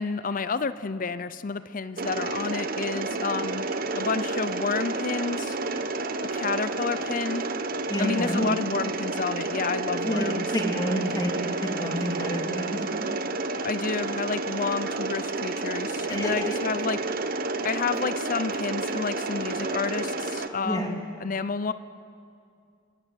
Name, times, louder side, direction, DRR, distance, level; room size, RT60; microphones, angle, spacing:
voice 1, 0.0-3.6 3.9-5.6 6.3-7.4 8.0-10.5 13.6-17.0 17.6-21.7, left 4 dB, 40° left, 14 dB, 0.6 m, -30 dB
Mechanisms, 2.0-20.5, right 3 dB, 45° right, 1.1 m, -30 dB
voice 2, 7.9-8.5 10.0-10.2 10.5-11.3 11.6-13.1 16.1-16.5 20.6-21.1, equal, 20° left, 1 dB, 3.0 m, -29 dB
29.0 x 13.0 x 9.1 m, 2.3 s
head